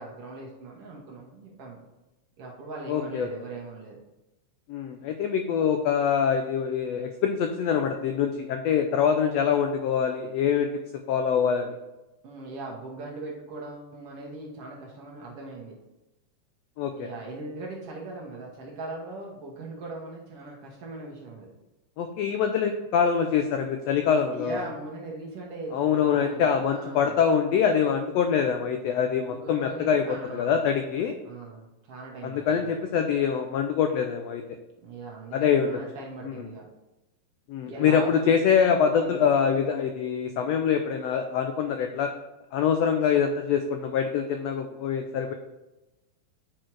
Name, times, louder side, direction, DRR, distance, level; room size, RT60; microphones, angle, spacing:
voice 1, 0.0-1.9 2.4-4.0 12.2-15.8 17.0-21.6 24.3-27.2 29.2-30.7 31.0-32.9 34.8-36.7 37.6-38.1 38.9-39.3, right 2 dB, 60° right, -2 dB, 1.9 m, -40 dB
voice 2, 2.9-3.3 4.7-10.7 11.1-11.7 16.8-17.1 22.0-24.6 25.7-30.0 30.3-31.2 32.2-34.4 35.3-35.8 36.2-36.5 37.5-42.1 42.5-45.3, left 7 dB, 85° left, 6 dB, 1.4 m, -24 dB
8.7 x 4.5 x 4.6 m, 1.0 s
omnidirectional pair, 3.5 m